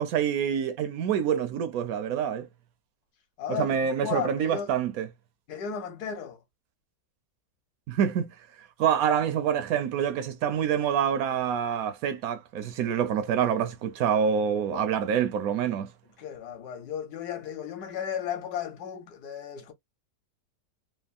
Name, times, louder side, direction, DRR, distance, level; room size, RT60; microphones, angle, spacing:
voice 1, 0.0-2.5 3.5-5.1 7.9-8.3 8.8-15.9, right 8 dB, 70° right, 0.8 m, -26 dB
voice 2, 3.4-4.7 5.5-6.4 14.7-14.9 16.2-19.7, left 8 dB, 65° left, 1.3 m, -35 dB
3.3 x 2.0 x 2.3 m
omnidirectional pair, 1.9 m